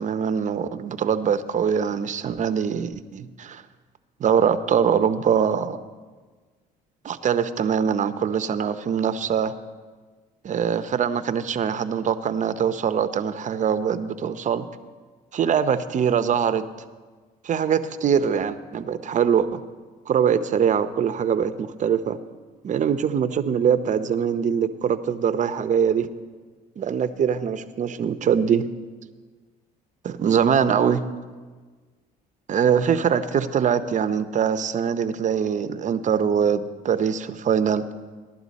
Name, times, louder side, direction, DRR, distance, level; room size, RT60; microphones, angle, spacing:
voice 1, 0.0-3.6 4.2-5.8 7.0-9.5 10.4-14.7 15.3-16.6 17.4-19.6 20.1-22.2 22.6-26.1 26.8-28.7 30.0-31.0 32.5-37.8, right 7 dB, 45° right, 12 dB, 0.7 m, -23 dB
16.0 x 11.5 x 4.2 m, 1.4 s
supercardioid pair, 90°, 18 cm